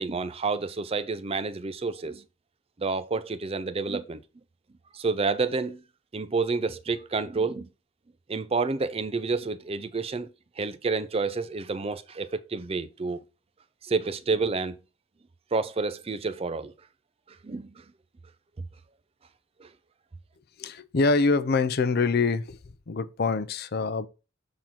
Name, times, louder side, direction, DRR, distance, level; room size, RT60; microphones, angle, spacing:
voice 1, 0.0-2.2 2.8-4.2 4.9-5.8 6.1-7.7 8.3-10.3 10.6-13.2 13.8-14.8 15.5-16.7 17.4-17.8 19.6-19.7, right 4 dB, 30° right, 0.4 m, -29 dB
voice 2, 20.6-22.6 22.9-24.1, left 4 dB, 50° left, 0.5 m, -25 dB
7.3 x 3.8 x 4.4 m
head